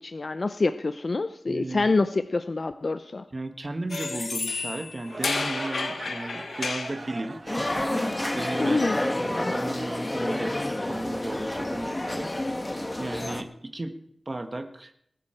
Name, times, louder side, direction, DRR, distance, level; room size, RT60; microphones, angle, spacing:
voice 1, 0.0-3.2 8.6-9.0, left 3 dB, 50° left, 9 dB, 0.6 m, -26 dB
voice 2, 1.5-1.9 3.3-8.1 8.3-8.8 9.2-12.3 12.6-13.9 14.2-14.9, right 2 dB, 35° right, 6 dB, 1.5 m, -35 dB
sound 1, 3.9-7.0, left 4 dB, 85° left, 1.2 m, -31 dB
sound 2, 5.0-10.2, right 3 dB, 55° right, 1.2 m, -40 dB
sound 3, 7.5-13.4, left 1 dB, 25° left, 1.5 m, -29 dB
19.5 x 11.5 x 4.5 m, 0.70 s
wide cardioid pair, 75°, 0 cm